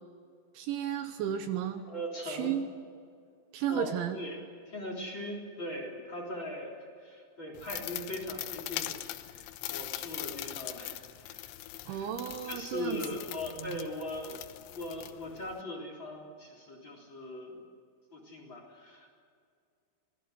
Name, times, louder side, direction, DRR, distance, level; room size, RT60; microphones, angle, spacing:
voice 1, 0.5-1.8 2.2-2.6 3.5-4.2 11.9-13.0 13.6-13.9, right 9 dB, 75° right, 8 dB, 3.2 m, -33 dB
voice 2, 1.8-2.5 3.7-4.4 4.7-11.6 11.9-12.1 12.4-17.6 18.1-19.1, left 1 dB, 25° left, 2 dB, 3.7 m, -40 dB
sound 1, 7.5-15.6, left 15 dB, 90° left, 3.7 m, -41 dB
26.0 x 20.5 x 8.1 m, 2.3 s
omnidirectional pair, 5.9 m